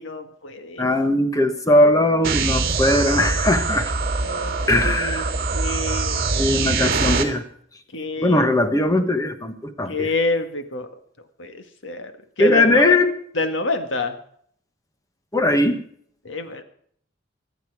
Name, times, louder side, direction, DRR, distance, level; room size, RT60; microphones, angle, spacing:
voice 1, 0.0-0.9 4.2-5.3 5.5-6.4 7.9-8.5 9.9-10.9 11.4-12.1 12.4-13.0 13.3-14.2 16.3-16.6, left 2 dB, 70° left, 8 dB, 1.8 m, -27 dB
voice 2, 0.8-3.9 4.7-5.3 6.3-7.4 8.2-10.1 12.4-13.1 15.3-15.8, left 1 dB, 20° left, 8 dB, 1.3 m, -19 dB
sound 1, 2.2-7.2, right 3 dB, 55° right, 2.0 m, -23 dB
24.0 x 9.1 x 4.8 m, 0.63 s
head